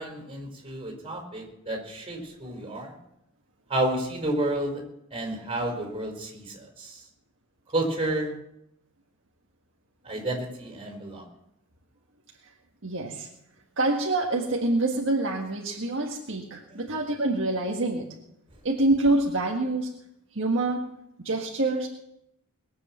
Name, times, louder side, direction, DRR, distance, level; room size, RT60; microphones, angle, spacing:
voice 1, 0.0-2.9 3.7-4.8 5.1-7.0 7.7-8.3 10.0-11.2 16.7-16.9, right 1 dB, 25° right, -1 dB, 4.8 m, -30 dB
voice 2, 12.8-13.3 13.8-18.1 18.6-19.9 20.4-20.9 21.2-21.9, right 2 dB, 60° right, -1 dB, 1.7 m, -26 dB
21.5 x 8.3 x 7.5 m, 0.80 s
head